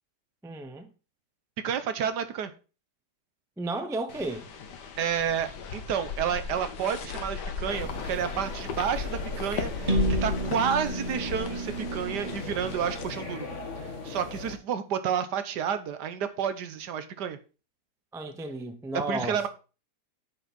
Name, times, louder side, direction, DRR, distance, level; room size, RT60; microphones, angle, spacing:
voice 1, 0.4-0.9 3.6-4.5 18.1-19.5, right 2 dB, 5° right, 0.3 m, -33 dB
voice 2, 1.6-2.5 5.0-13.5 14.0-17.4 19.1-19.5, right 8 dB, 75° right, 1.5 m, -30 dB
sound 1, 4.1-13.0, left 5 dB, 75° left, 1.7 m, -36 dB
sound 2, 7.7-14.5, left 3 dB, 45° left, 1.7 m, -39 dB
sound 3, 9.9-13.7, right 2 dB, 30° right, 1.2 m, -32 dB
9.0 x 6.0 x 4.2 m
omnidirectional pair, 1.8 m